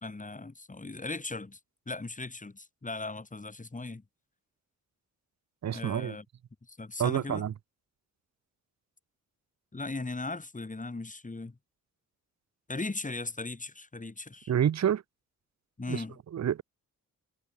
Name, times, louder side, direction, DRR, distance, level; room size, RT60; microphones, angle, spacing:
voice 1, 0.0-1.6 1.9-4.0 5.7-6.2 6.7-7.4 9.7-11.6 12.7-14.5 15.8-16.2, left 3 dB, 25° left, 2.9 m, -38 dB
voice 2, 5.6-6.2 7.0-7.5 14.5-15.0 15.9-16.0 16.3-16.6, right 9 dB, 55° right, 0.8 m, -28 dB
cardioid pair, 60°, 33 cm